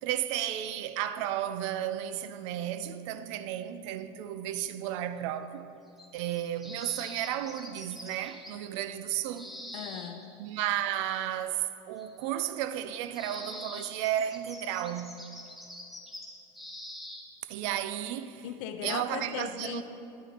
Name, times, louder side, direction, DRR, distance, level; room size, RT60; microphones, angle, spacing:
voice 1, 0.0-5.7 6.1-9.5 10.4-15.2 17.5-18.5 18.8-19.8, right 11 dB, 80° right, 0.4 m, -33 dB
sound 1, 5.9-8.6 9.3-10.4 12.0-12.3 12.8-12.9 13.2-17.3, left 1 dB, ahead, 0.7 m, -45 dB
voice 2, 9.7-10.4 18.4-19.8, left 9 dB, 75° left, 0.6 m, -38 dB
10.5 x 9.0 x 2.9 m
cardioid pair, 145°, 15 cm